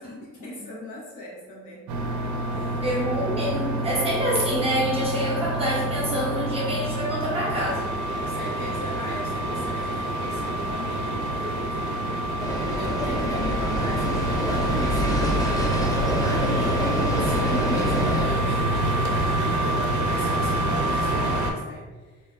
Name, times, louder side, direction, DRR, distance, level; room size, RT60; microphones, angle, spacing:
voice 1, 0.0-1.8 2.5-2.8 8.2-22.2, left 1 dB, 85° left, -5 dB, 0.9 m, -38 dB
sound 1, 1.9-21.5, right 1 dB, 70° right, 0.4 m, -26 dB
voice 2, 2.8-7.9 16.6-16.7, equal, 20° right, -5 dB, 0.8 m, -27 dB
sound 2, 12.4-18.3, left 1 dB, 15° left, 0.3 m, -27 dB
2.5 x 2.0 x 2.4 m, 1.3 s
cardioid pair, 90°, 30 cm